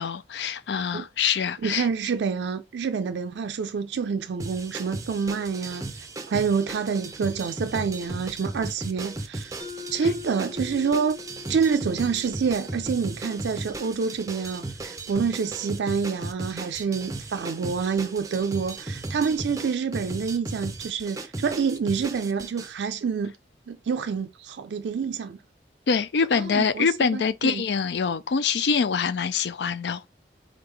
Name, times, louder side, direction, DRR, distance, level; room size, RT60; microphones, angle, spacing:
voice 1, 0.0-1.9 25.9-30.1, left 6 dB, 80° left, 0.4 m, -25 dB
voice 2, 1.6-5.9 6.3-9.5 9.9-11.2 11.5-23.3 23.7-25.4 26.3-27.6, right 5 dB, 85° right, 0.4 m, -27 dB
sound 1, 4.4-22.7, right 2 dB, 20° right, 0.4 m, -36 dB
Mallet percussion, 9.6-14.2, left 6 dB, 30° left, 1.0 m, -44 dB
3.8 x 3.5 x 3.3 m
head